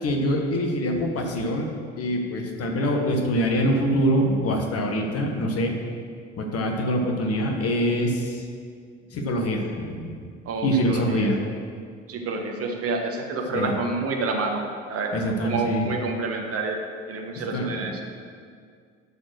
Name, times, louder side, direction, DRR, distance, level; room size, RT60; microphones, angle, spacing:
voice 1, 0.0-5.7 6.4-8.4 9.1-10.1 10.6-11.4 13.5-13.7 15.1-15.9 17.3-17.9, equal, 40° left, 2 dB, 1.5 m, -24 dB
voice 2, 10.4-11.4 12.1-14.6 14.9-16.8 17.1-18.0, right 3 dB, 40° right, 2 dB, 1.4 m, -28 dB
12.5 x 4.3 x 6.3 m, 2.1 s
figure-of-eight pair, 60°, 37 cm